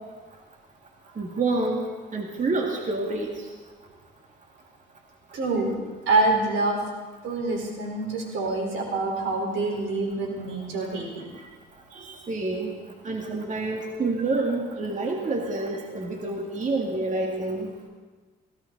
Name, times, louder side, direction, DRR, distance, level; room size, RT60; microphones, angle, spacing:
voice 1, 1.2-1.9 2.1-3.3 11.9-12.7 13.0-17.7, right 3 dB, 40° right, 1 dB, 2.1 m, -28 dB
voice 2, 5.3-5.7 6.1-6.8 7.2-11.2, right 2 dB, 80° right, 0 dB, 4.2 m, -26 dB
19.0 x 16.5 x 4.0 m, 1.3 s
cardioid pair, 90°, 20 cm